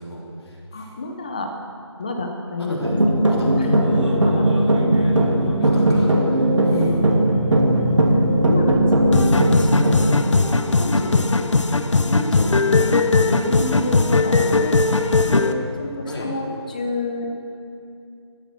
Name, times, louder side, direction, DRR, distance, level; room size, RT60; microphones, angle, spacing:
voice 1, 0.0-0.9 2.6-2.9 3.3-3.5 5.6-6.9 16.1-16.3, equal, 60° left, -3 dB, 3.5 m, -37 dB
voice 2, 0.7-1.5 2.0-3.0 3.6-4.5 5.1-5.8 6.5-7.2 7.8-8.1 8.4-10.5 10.8-11.3 12.0-13.0 13.3-14.8 15.3-17.3, left 2 dB, 15° left, 3 dB, 0.7 m, -29 dB
sound 1, 2.8-10.2, right 1 dB, 90° right, 2.4 m, -18 dB
sound 2, 6.0-10.6, right 4 dB, 35° right, 0.9 m, -31 dB
sound 3, 9.1-15.5, left 3 dB, 75° left, 0.9 m, -19 dB
13.0 x 11.5 x 6.1 m, 2.5 s
figure-of-eight pair, 170°, 15 cm